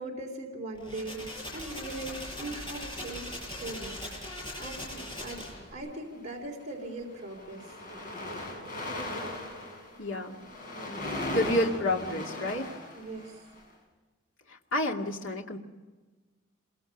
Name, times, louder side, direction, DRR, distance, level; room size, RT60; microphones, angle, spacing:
voice 1, 0.0-5.4 5.7-7.8 13.0-13.5, right 2 dB, 35° right, -2 dB, 3.8 m, -40 dB
sound 1, 0.7-5.7, left 1 dB, 25° left, 7.0 m, -40 dB
sound 2, 4.8-5.8 6.6-6.8 7.1-13.6, left 1 dB, 40° left, 7.5 m, -38 dB
voice 2, 10.0-10.4 11.3-12.8 14.5-15.6, left 1 dB, 70° left, 1 dB, 2.4 m, -29 dB
27.0 x 23.5 x 5.4 m, 1.3 s
head